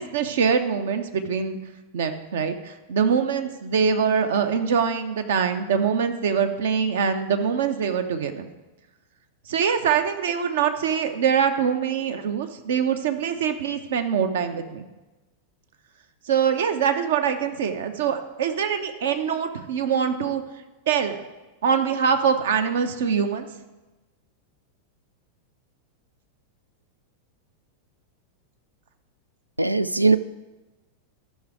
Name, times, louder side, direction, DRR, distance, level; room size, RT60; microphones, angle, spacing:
voice 1, 0.0-1.6 1.9-8.5 9.5-14.9 16.3-20.4 20.9-21.2 21.6-23.5, right 7 dB, 60° right, 8 dB, 0.8 m, -24 dB
voice 2, 29.6-30.2, right 3 dB, 85° right, 14 dB, 0.3 m, -19 dB
12.5 x 5.5 x 4.8 m, 1.1 s
figure-of-eight pair, 90°, 0 cm